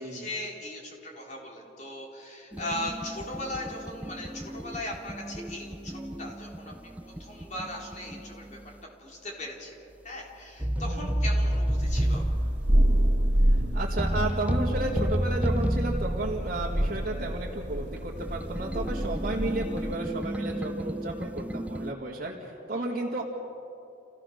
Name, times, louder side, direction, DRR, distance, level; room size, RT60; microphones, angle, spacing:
voice 1, 0.0-12.5 22.7-22.8, left 1 dB, 40° left, -1 dB, 3.9 m, -39 dB
sound 1, 2.5-8.7 10.6-21.9, right 1 dB, 10° right, 0.5 m, -32 dB
Thunder, 11.7-20.1, right 1 dB, 80° right, 2.4 m, -28 dB
voice 2, 13.5-23.2, right 1 dB, 50° right, -6 dB, 2.2 m, -33 dB
28.5 x 16.5 x 6.5 m, 2.8 s
head